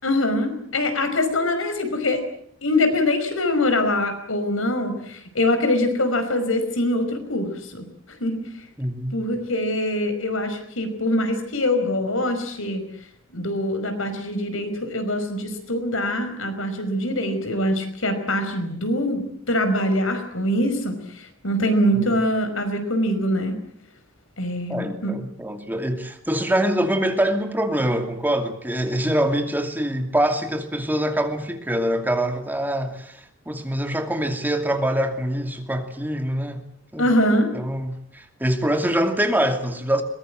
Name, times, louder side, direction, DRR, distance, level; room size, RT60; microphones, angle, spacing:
voice 1, 0.0-2.2 2.6-7.8 8.2-8.4 9.1-12.8 13.3-23.6 24.4-25.1 37.0-37.5, left 1 dB, 85° left, 8 dB, 5.4 m, -23 dB
voice 2, 8.8-9.2 21.9-22.1 24.7-36.6 36.9-37.1 37.5-40.0, right 1 dB, 10° right, 5 dB, 2.6 m, -24 dB
22.5 x 21.5 x 7.8 m, 0.68 s
head